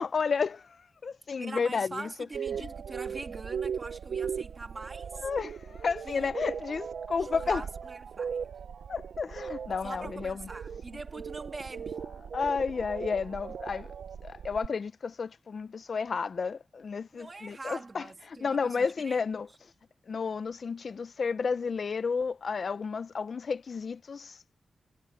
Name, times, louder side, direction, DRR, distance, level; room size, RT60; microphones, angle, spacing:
voice 1, 0.0-2.1 2.5-2.7 5.2-7.7 8.9-10.5 12.3-13.9 14.2-19.7 20.1-24.4, left 5 dB, 55° left, 0.4 m, -32 dB
voice 2, 1.4-5.3 6.0-6.3 7.2-8.5 9.8-12.0 17.1-19.2, right 3 dB, 30° right, 2.6 m, -43 dB
sound 1, 2.3-14.7, right 7 dB, 90° right, 0.4 m, -38 dB
wide cardioid pair, 140°, 0 cm